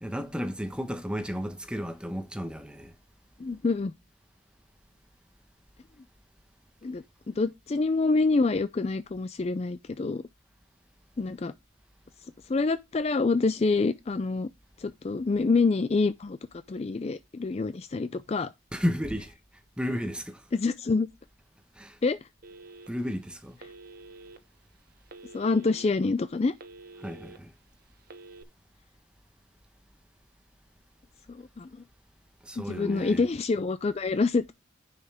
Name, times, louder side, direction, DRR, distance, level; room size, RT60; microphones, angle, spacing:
voice 1, 0.0-2.9 18.7-19.3 19.8-20.4 21.7-22.0 22.9-23.6 27.0-27.5 32.4-33.2, equal, 5° right, 1.0 m, -33 dB
voice 2, 3.4-3.9 6.8-10.2 11.2-11.5 12.5-14.5 14.8-16.4 16.7-18.5 20.5-21.1 22.0-22.2 25.3-26.5 31.3-31.7 32.6-34.5, left 3 dB, 30° left, 0.4 m, -26 dB
Telephone, 22.4-23.1 23.6-24.4 25.1-25.9 26.3-27.4 28.0-28.4, right 3 dB, 45° right, 1.0 m, -48 dB
10.0 x 5.6 x 3.4 m
head